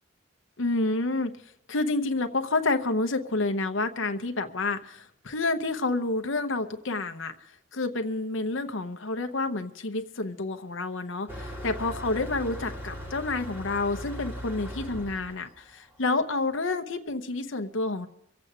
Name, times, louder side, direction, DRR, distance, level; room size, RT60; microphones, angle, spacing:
voice 1, 0.6-1.3 1.7-18.1, left 2 dB, 70° left, 6 dB, 0.9 m, -29 dB
Motor vehicle (road), 11.3-16.4, equal, 10° right, 2.4 m, -39 dB
24.0 x 8.4 x 5.0 m, 0.77 s
head